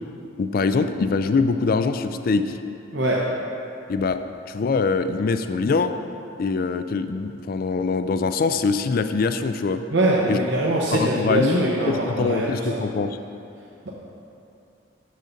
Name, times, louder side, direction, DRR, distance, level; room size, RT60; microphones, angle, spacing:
voice 1, 0.4-2.6 3.9-4.2 4.5-5.9 6.4-9.8 10.3-10.4 10.9-13.2, left 4 dB, 45° left, 9 dB, 0.3 m, -23 dB
voice 2, 9.9-12.8, right 1 dB, 60° right, -4 dB, 0.8 m, -23 dB
6.9 x 6.4 x 5.1 m, 2.7 s
head